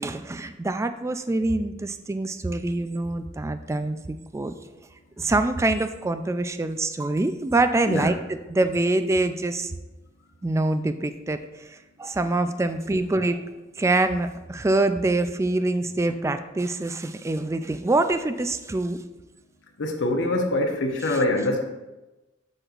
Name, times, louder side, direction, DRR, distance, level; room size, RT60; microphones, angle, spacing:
voice 1, 0.0-4.5 5.2-8.1 8.5-9.7 10.4-11.4 12.0-13.4 13.8-19.0, right 2 dB, 15° right, 10 dB, 0.3 m, -25 dB
voice 2, 19.8-21.6, left 1 dB, 85° left, 3 dB, 0.8 m, -24 dB
7.7 x 6.3 x 2.5 m, 1.1 s
head